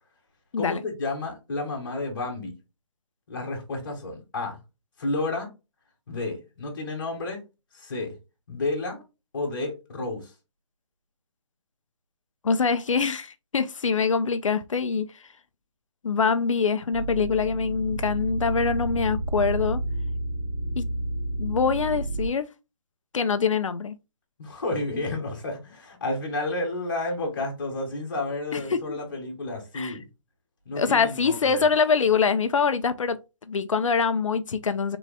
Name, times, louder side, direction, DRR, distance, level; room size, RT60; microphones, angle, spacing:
voice 1, 0.6-2.5 3.3-4.6 5.0-5.5 6.1-7.4 7.7-8.1 8.5-9.0 9.3-10.3 24.4-30.0 30.6-31.7, left 2 dB, 40° left, 1.7 m, -31 dB
voice 2, 12.4-15.1 16.0-19.8 20.8-20.9 21.4-22.5 23.1-23.9 28.5-29.0 29.7-30.0 30.8-33.2 33.5-35.0, left 5 dB, 80° left, 0.7 m, -24 dB
sound 1, 16.9-22.3, right 2 dB, 15° left, 2.0 m, -30 dB
4.8 x 4.0 x 2.3 m
hypercardioid pair, 175°, 16 cm